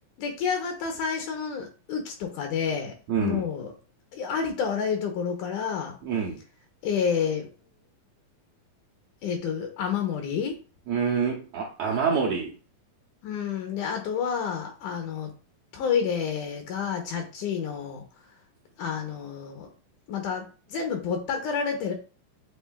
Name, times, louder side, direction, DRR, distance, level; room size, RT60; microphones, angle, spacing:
voice 1, 0.2-3.7 4.1-6.0 6.8-7.5 9.2-10.5 13.2-15.3 15.7-18.0 18.8-19.7 20.1-21.9, left 6 dB, 80° left, 4 dB, 2.1 m, -29 dB
voice 2, 3.1-3.4 6.0-6.4 10.9-12.6, right 6 dB, 75° right, -2 dB, 1.7 m, -26 dB
7.4 x 3.1 x 2.3 m, 0.35 s
omnidirectional pair, 3.8 m